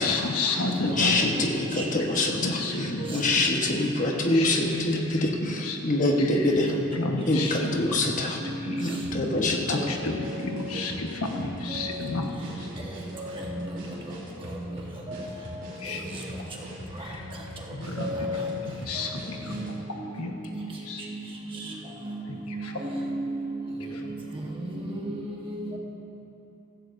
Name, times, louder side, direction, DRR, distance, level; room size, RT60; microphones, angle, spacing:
voice 1, 0.0-1.5 2.3-3.3 3.8-3.9 4.3-5.8 6.2-6.5 6.9-8.0 8.4-12.7 15.8-16.2 17.0-17.3 17.7-19.6 20.2-20.4 20.8-21.0 22.3-22.7 23.9-24.0, left 2 dB, 90° left, 2 dB, 1.2 m, -32 dB
voice 2, 0.8-6.8 7.3-8.4 8.8-9.8, left 2 dB, 35° left, 1 dB, 1.2 m, -25 dB
voice 3, 8.4-8.8 11.3-11.4 11.7-11.9 13.2-13.7 14.5-14.6 15.1-15.3 18.0-18.6 19.5-19.6 20.0-20.1 20.5-20.6 21.1-21.2 22.0-22.1 22.5-23.3 24.7-25.1 25.4-25.8, equal, 25° right, -2 dB, 1.3 m, -34 dB
sound 1, 9.0-19.8, equal, 60° right, 3.2 m, -41 dB
15.5 x 15.0 x 2.6 m, 2.9 s
head